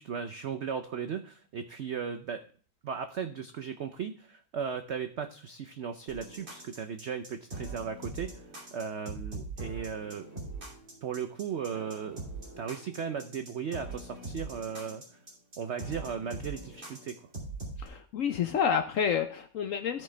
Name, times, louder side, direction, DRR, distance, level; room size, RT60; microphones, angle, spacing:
voice 1, 0.0-2.4 2.8-10.3 11.0-12.2 12.6-15.2 15.6-17.3, right 7 dB, 75° right, 8 dB, 0.6 m, -36 dB
sound 1, 6.1-17.9, right 2 dB, 35° right, 3.1 m, -42 dB
voice 2, 17.8-20.0, left 7 dB, 65° left, 8 dB, 0.8 m, -29 dB
13.5 x 5.4 x 3.3 m, 0.43 s
omnidirectional pair, 1.9 m